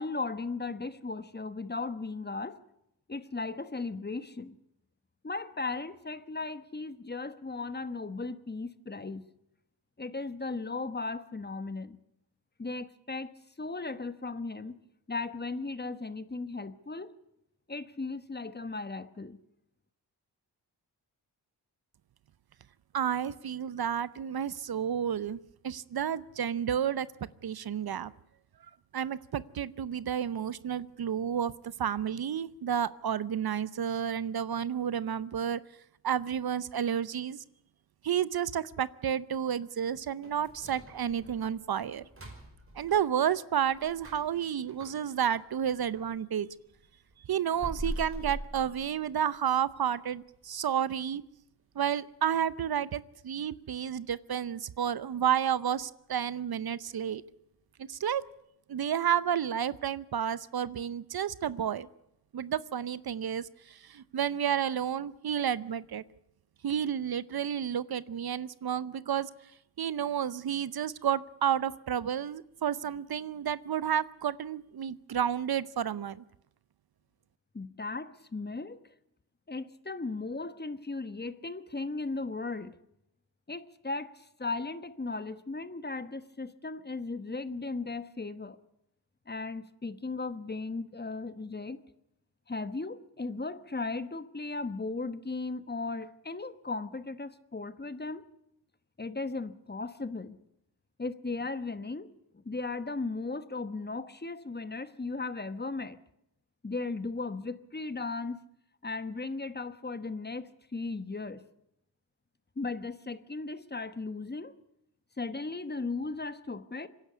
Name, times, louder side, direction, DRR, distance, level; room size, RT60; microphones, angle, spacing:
voice 1, 0.0-2.6 3.1-4.6 5.2-9.3 10.0-12.0 12.6-13.3 13.6-14.8 15.1-17.1 17.7-19.4 77.5-78.8 79.5-82.7 83.5-88.6 89.3-91.8 92.5-98.2 99.0-100.4 101.0-102.1 102.3-106.0 106.6-108.4 108.8-111.4 112.6-114.5 115.2-116.9, left 3 dB, 25° left, 13 dB, 1.2 m, -36 dB
voice 2, 22.9-25.4 25.6-27.1 27.4-28.1 28.9-35.6 36.0-37.4 38.0-42.1 42.8-46.5 47.3-51.2 51.7-57.2 57.8-58.2 58.7-61.9 62.3-66.0 66.6-69.3 69.8-76.2, right 9 dB, 60° right, 18 dB, 0.7 m, -31 dB
sound 1, 40.2-46.2 46.5-49.4 49.7-49.8 50.3-50.4 51.0-51.3 51.6-51.7 52.2-52.3, right 1 dB, 30° right, 5.8 m, -44 dB
25.0 x 11.0 x 9.5 m, 0.80 s
cardioid pair, 70°, 42 cm